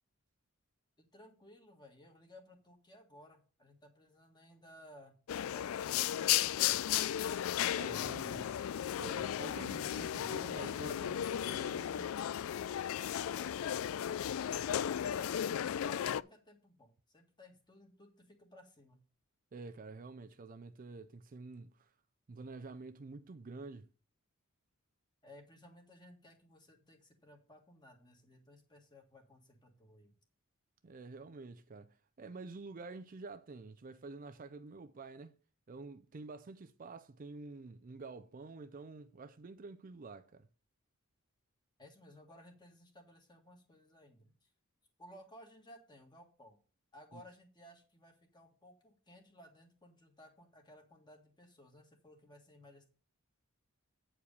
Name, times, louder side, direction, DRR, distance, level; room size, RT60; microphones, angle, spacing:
voice 1, 1.0-5.1 13.0-13.6 14.5-19.0 25.2-30.1 41.8-44.5 45.0-46.6 46.9-52.9, left 1 dB, 20° left, 1.8 m, -58 dB
sound 1, 5.3-16.2, left 10 dB, 70° left, 0.3 m, -35 dB
voice 2, 7.7-8.6 8.9-12.1 19.5-21.9 22.3-23.9 30.8-35.3 35.7-40.5 47.1-47.2, right 3 dB, 40° right, 0.4 m, -48 dB
8.7 x 4.8 x 6.6 m
head